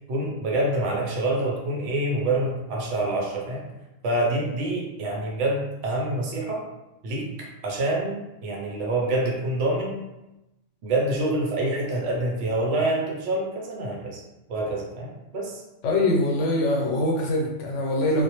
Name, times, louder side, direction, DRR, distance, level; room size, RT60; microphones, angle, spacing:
voice 1, 0.1-3.6 4.0-6.6 7.0-8.2 8.4-10.0 10.8-14.2 14.5-15.6, right 1 dB, 80° right, -2 dB, 1.0 m, -26 dB
voice 2, 15.8-18.2, left 1 dB, 80° left, -1 dB, 0.9 m, -23 dB
2.4 x 2.0 x 2.8 m, 0.97 s
omnidirectional pair, 1.2 m